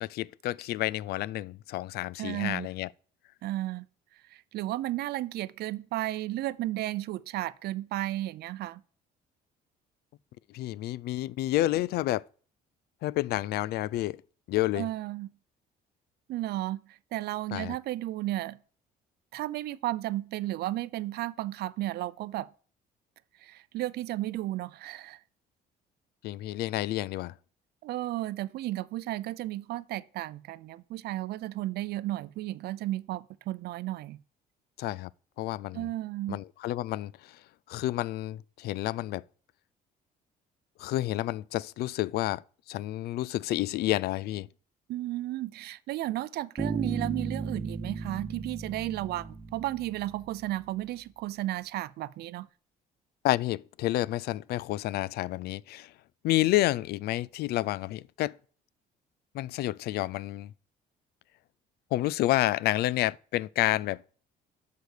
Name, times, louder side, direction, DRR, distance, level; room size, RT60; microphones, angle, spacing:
voice 1, 0.0-2.9 10.5-12.2 13.0-14.2 14.5-14.9 17.5-17.8 26.2-27.4 34.8-35.1 35.4-35.9 36.3-37.4 37.7-39.2 40.8-42.4 42.7-44.5 53.2-55.9 56.2-58.4 59.3-60.5 61.9-64.0, left 16 dB, 70° left, 0.4 m, -29 dB
voice 2, 2.2-2.7 3.4-3.8 4.3-8.8 14.7-15.3 16.3-18.6 19.3-22.5 23.4-25.2 27.8-34.2 35.7-36.4 44.9-52.5, right 15 dB, 70° right, 0.6 m, -33 dB
Bass guitar, 46.6-50.3, right 3 dB, 15° right, 1.2 m, -35 dB
8.1 x 6.7 x 6.5 m
cardioid pair, 110°, 17 cm